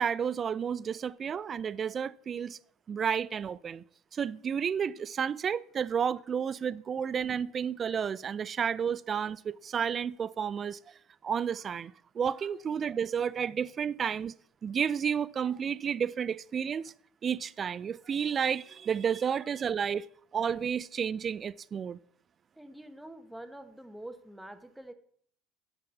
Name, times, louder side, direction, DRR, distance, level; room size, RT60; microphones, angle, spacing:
voice 1, 0.0-2.6 2.9-3.8 4.1-10.8 11.2-14.3 14.6-16.9 17.2-20.0 20.3-22.0, right 7 dB, 40° right, 0.3 m, -31 dB
voice 2, 22.5-24.9, right 1 dB, 5° right, 1.0 m, -46 dB
6.4 x 5.9 x 6.8 m
hypercardioid pair, 80°, 0 cm